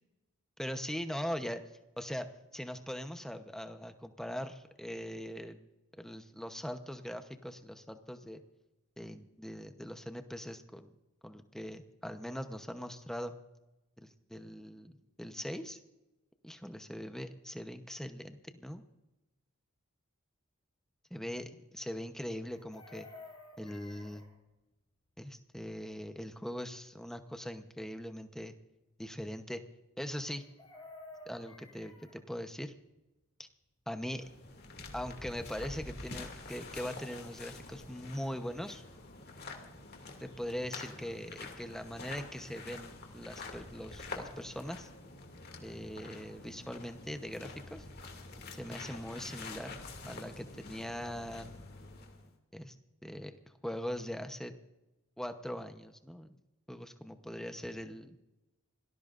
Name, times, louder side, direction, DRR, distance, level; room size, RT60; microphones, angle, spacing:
voice 1, 0.6-1.6 2.0-5.7 6.0-8.4 9.0-10.9 11.2-13.3 14.0-15.8 16.4-18.8 21.1-23.1 23.6-24.2 25.2-28.5 29.0-29.6 30.0-30.4 31.3-32.7 33.9-34.2 34.9-38.8 40.2-44.9 45.6-47.8 48.5-49.7 50.1-51.7 52.5-52.7 53.0-53.4 53.6-54.5 55.2-56.4 56.7-58.2, equal, ahead, 7 dB, 0.9 m, -41 dB
Chicken rooster, 22.5-24.3 30.4-32.2 34.4-34.5 34.8-35.0, left 2 dB, 20° left, 7.2 m, -52 dB
sound 1, 34.0-52.3, left 3 dB, 50° left, 2.4 m, -47 dB
26.0 x 19.0 x 2.6 m, 0.99 s
head